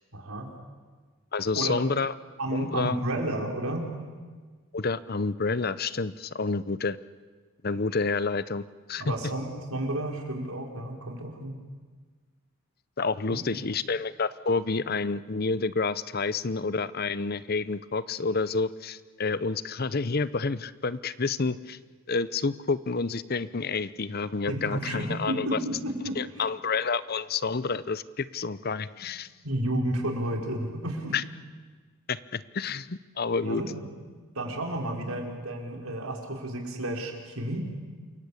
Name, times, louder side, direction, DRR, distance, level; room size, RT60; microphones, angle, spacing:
voice 1, 0.1-0.5 1.5-1.7 2.4-4.0 9.0-11.5 24.5-26.2 29.4-31.1 33.4-33.9 34.3-37.6, right 1 dB, 85° right, 1 dB, 4.9 m, -31 dB
voice 2, 1.3-2.1 2.5-3.0 4.7-7.0 7.6-8.6 8.9-9.0 13.0-21.8 22.1-25.6 26.2-29.3 31.1-31.2 32.1-33.6, left 4 dB, 45° left, 16 dB, 0.7 m, -29 dB
28.0 x 23.0 x 8.5 m, 1.5 s
head